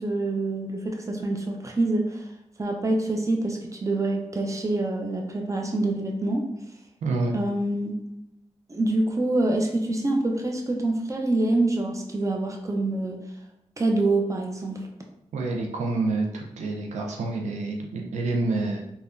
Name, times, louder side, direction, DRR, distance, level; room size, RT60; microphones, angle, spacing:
voice 1, 0.0-2.3 2.6-6.5 7.3-7.9 8.7-13.2 13.8-14.8, right 2 dB, 25° right, 2 dB, 0.6 m, -26 dB
voice 2, 7.0-7.4 15.3-18.8, right 3 dB, 80° right, 0 dB, 0.4 m, -28 dB
3.5 x 2.2 x 2.5 m, 0.80 s
cardioid pair, 50°, 12 cm